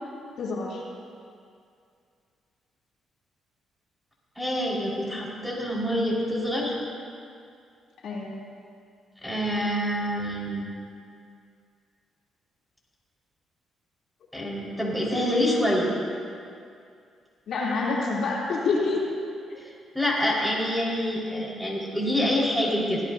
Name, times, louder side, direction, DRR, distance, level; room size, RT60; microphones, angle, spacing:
voice 1, 0.4-0.8 8.0-8.4 17.5-19.1 19.5-19.6, left 3 dB, 65° left, -4 dB, 3.1 m, -27 dB
voice 2, 4.4-6.8 9.2-10.7 14.3-15.9 19.9-23.0, equal, ahead, -5 dB, 4.7 m, -26 dB
24.0 x 17.0 x 2.8 m, 2.3 s
cardioid pair, 90°, 0 cm